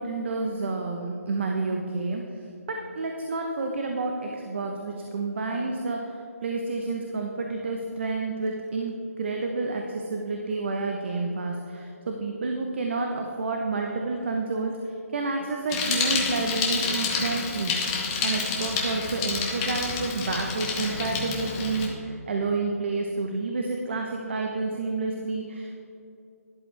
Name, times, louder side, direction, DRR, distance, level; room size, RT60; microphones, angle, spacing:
voice 1, 0.0-2.2 2.7-17.9 18.2-25.8, right 3 dB, 45° right, 2 dB, 1.0 m, -29 dB
Bicycle, 15.7-21.9, left 4 dB, 15° left, 1.0 m, -29 dB
12.5 x 11.0 x 3.4 m, 2.9 s
hypercardioid pair, 170°, 8 cm